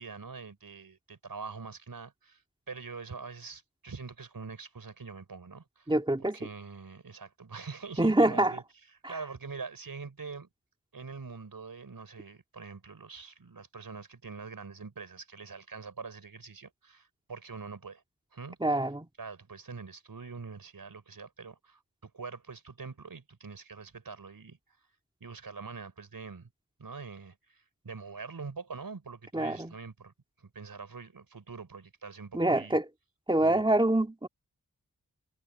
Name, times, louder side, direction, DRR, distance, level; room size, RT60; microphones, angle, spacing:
voice 1, 0.0-5.9 6.3-8.6 9.1-10.5 10.9-18.0 18.3-18.6 19.2-24.6 25.2-26.5 26.8-30.1 30.4-32.8 33.4-33.6, right 4 dB, 75° right, 6.1 m, -44 dB
voice 2, 5.9-6.4 8.0-8.6 9.0-9.1 18.6-19.1 29.3-29.7 32.3-32.9 33.3-34.3, right 1 dB, 15° right, 2.5 m, -25 dB
wide cardioid pair, 70°, 35 cm